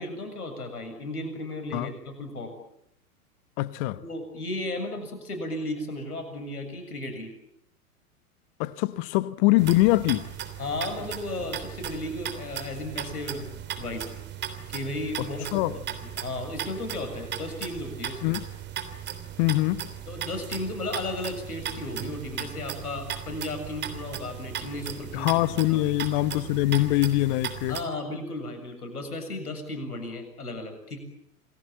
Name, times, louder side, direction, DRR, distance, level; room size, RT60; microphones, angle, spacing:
voice 1, 0.0-2.5 4.0-7.3 10.6-14.1 14.7-18.3 20.1-25.4 25.7-25.8 27.7-31.0, left 2 dB, 80° left, 7.4 m, -35 dB
voice 2, 3.6-4.0 8.6-10.3 15.2-15.8 18.2-18.4 19.4-19.9 25.1-27.8, left 18 dB, 35° left, 1.0 m, -24 dB
sound 1, 9.6-27.8, right 9 dB, 25° right, 3.4 m, -37 dB
28.5 x 20.5 x 8.9 m
figure-of-eight pair, 105°, 45 cm